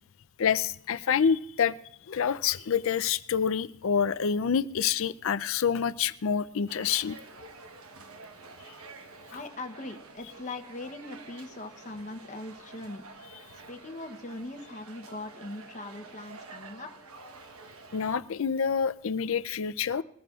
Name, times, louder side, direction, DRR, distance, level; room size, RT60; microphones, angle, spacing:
voice 1, 0.4-1.7 2.1-7.2 17.9-20.0, left 7 dB, 65° left, 16 dB, 0.4 m, -27 dB
sound 1, 6.7-18.2, right 3 dB, 80° right, 1.1 m, -49 dB
voice 2, 9.3-13.1 13.7-16.9, left 2 dB, 35° left, 5 dB, 0.8 m, -40 dB
22.0 x 14.0 x 2.4 m, 0.70 s
head